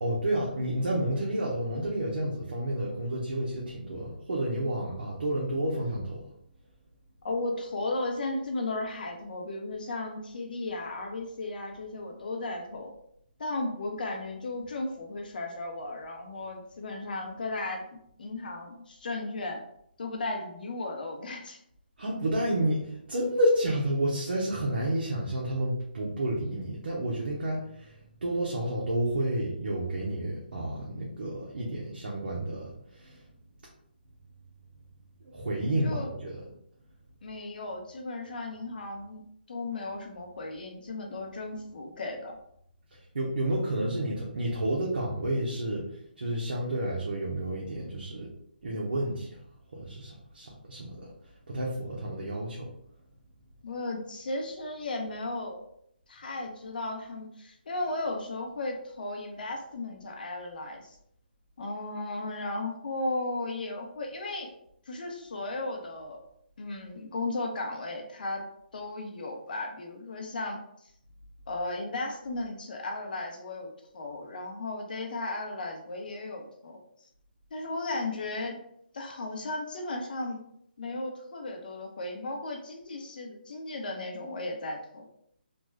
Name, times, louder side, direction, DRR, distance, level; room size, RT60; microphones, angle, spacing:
voice 1, 0.0-6.2 22.0-27.9 28.2-32.7 33.0-33.2 35.2-36.4 43.1-45.9 46.2-48.3 48.6-49.3 49.7-51.1 51.5-52.7, right 1 dB, 75° right, -4 dB, 0.9 m, -30 dB
voice 2, 7.2-12.9 13.4-19.6 20.0-21.6 35.8-36.1 37.2-42.4 53.6-55.6 56.1-61.0 61.6-64.5 64.9-66.2 66.6-68.4 68.7-70.6 71.5-76.8 77.5-78.6 78.9-80.4 80.8-85.0, left 2 dB, 60° left, 2 dB, 0.8 m, -35 dB
3.3 x 2.2 x 3.1 m, 0.71 s
hypercardioid pair, 165°, 6 cm